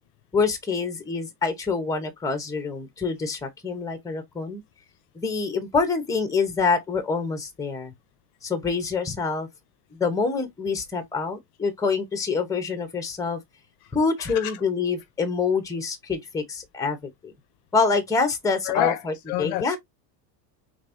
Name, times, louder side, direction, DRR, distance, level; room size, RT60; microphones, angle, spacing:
voice 1, 0.3-4.6 5.1-7.9 8.4-9.5 9.9-13.4 13.9-17.3 17.7-19.8, left 4 dB, 5° left, 0.9 m, -26 dB
voice 2, 18.7-19.0 19.3-19.8, left 15 dB, 55° left, 0.6 m, -27 dB
5.2 x 3.5 x 2.6 m
cardioid pair, 160°, 49 cm